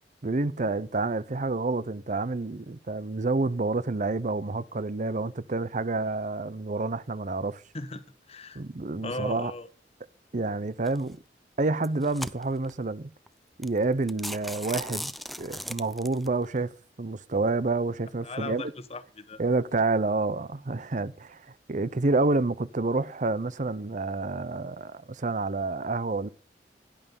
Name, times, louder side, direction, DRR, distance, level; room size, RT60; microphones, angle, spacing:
voice 1, 0.2-7.6 8.5-9.5 10.3-11.2 11.6-13.1 13.6-15.1 15.4-18.6 19.4-26.3, right 3 dB, 45° right, 0.7 m, -28 dB
voice 2, 7.7-8.6 9.0-9.7 18.2-19.4, left 2 dB, 35° left, 1.3 m, -37 dB
sound 1, 10.9-11.1 11.7-12.7 13.3-13.4 13.6-13.8 14.1-16.3, equal, ahead, 0.7 m, -37 dB
17.0 x 11.5 x 5.4 m
head